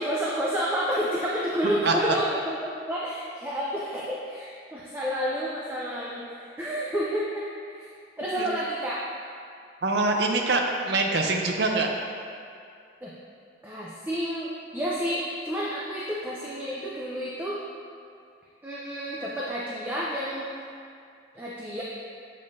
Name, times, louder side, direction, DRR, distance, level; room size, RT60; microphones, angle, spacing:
voice 1, 0.0-7.9 8.2-9.0 13.0-13.1 13.6-17.6 18.6-20.5 21.3-21.8, equal, 10° right, -6 dB, 0.5 m, -30 dB
voice 2, 9.8-11.9, right 3 dB, 60° right, 2 dB, 0.6 m, -24 dB
7.6 x 5.3 x 2.6 m, 2.4 s
head